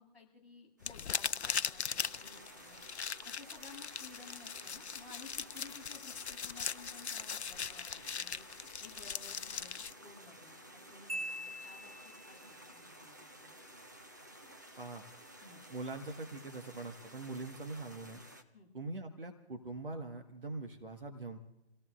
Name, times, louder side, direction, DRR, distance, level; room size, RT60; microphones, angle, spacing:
voice 1, 0.0-2.8 3.2-8.4 8.8-9.7 10.0-11.9 12.3-13.6 15.4-15.6 18.5-18.7, left 4 dB, 5° left, -11 dB, 7.0 m, -56 dB
sound 1, 0.8-9.9, left 6 dB, 85° left, 0.5 m, -39 dB
sound 2, 0.8-18.4, right 1 dB, 20° right, 0.7 m, -54 dB
Marimba xylophone, 11.1-12.5, equal, 80° right, 7.7 m, -42 dB
voice 2, 15.7-18.2 18.7-21.4, right 3 dB, 55° right, 4 dB, 1.6 m, -43 dB
29.0 x 17.5 x 2.5 m, 0.86 s
figure-of-eight pair, 160°, 32 cm